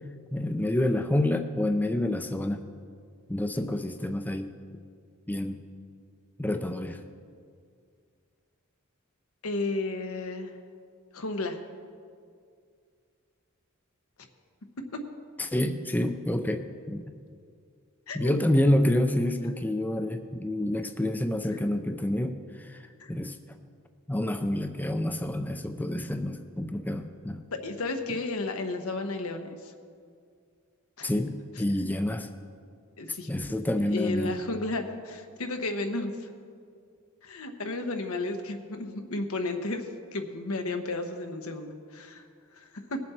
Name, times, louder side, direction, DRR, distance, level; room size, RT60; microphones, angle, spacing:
voice 1, 0.3-2.6 3.3-4.5 5.3-5.6 6.4-7.0 15.4-17.1 18.1-22.8 23.1-23.4 24.1-27.4 31.0-32.3 33.3-34.4, left 1 dB, 10° left, 7 dB, 0.4 m, -28 dB
voice 2, 9.4-10.5 11.1-11.6 14.9-15.0 18.1-18.4 21.5-21.6 23.0-23.1 27.5-29.7 31.0-31.1 31.8-31.9 33.0-33.3 33.8-36.3 37.2-42.2 42.5-43.0, left 2 dB, 85° left, 6 dB, 1.0 m, -33 dB
20.0 x 7.5 x 4.3 m, 2.2 s
head